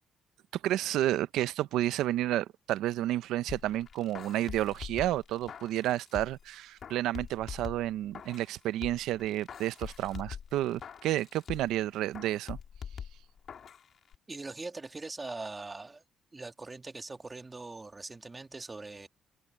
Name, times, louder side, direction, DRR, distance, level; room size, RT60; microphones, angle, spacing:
voice 1, 0.6-12.6, right 14 dB, 90° right, 0.5 m, -31 dB
sound 1, 3.5-6.5 6.8-8.5 8.8-11.8 12.1-13.8 14.1-14.2, left 7 dB, 55° left, 2.5 m, -44 dB
voice 2, 14.3-16.0 16.3-19.1, right 3 dB, 25° right, 1.5 m, -42 dB
cardioid pair, 90°, 0 cm